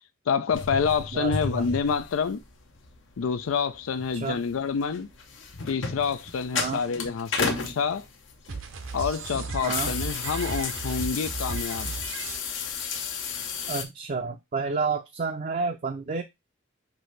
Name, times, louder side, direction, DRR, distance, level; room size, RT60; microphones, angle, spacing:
voice 1, 0.3-2.4 3.2-5.1 5.7-8.0 8.9-11.9, left 6 dB, 90° left, 0.4 m, -27 dB
sound 1, 0.5-13.8, left 5 dB, 65° left, 0.8 m, -34 dB
voice 2, 1.1-1.7 4.1-4.4 6.5-6.8 9.6-9.9 13.7-16.2, right 4 dB, 40° right, 0.4 m, -30 dB
sound 2, 8.5-12.4, right 4 dB, 75° right, 0.7 m, -35 dB
6.0 x 2.7 x 3.2 m
head